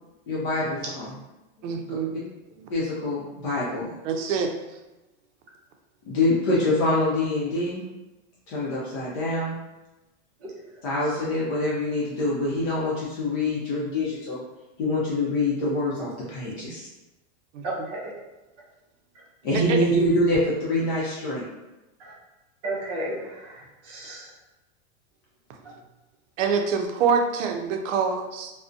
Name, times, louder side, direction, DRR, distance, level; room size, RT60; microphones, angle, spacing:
voice 1, 0.3-1.1 1.9-2.0 2.7-3.9 6.1-7.8 8.5-9.5 10.8-14.4 14.8-16.8 19.4-21.4, left 2 dB, 40° left, -6 dB, 0.5 m, -25 dB
voice 2, 1.6-2.2 4.0-4.5 17.5-17.7 19.5-19.8 26.4-28.5, right 6 dB, 90° right, 4 dB, 0.5 m, -25 dB
voice 3, 17.6-18.1 19.1-19.2 22.0-22.1 22.6-24.3, right 1 dB, 30° right, -4 dB, 0.5 m, -33 dB
2.3 x 2.1 x 2.5 m, 1.0 s
supercardioid pair, 165°, 36 cm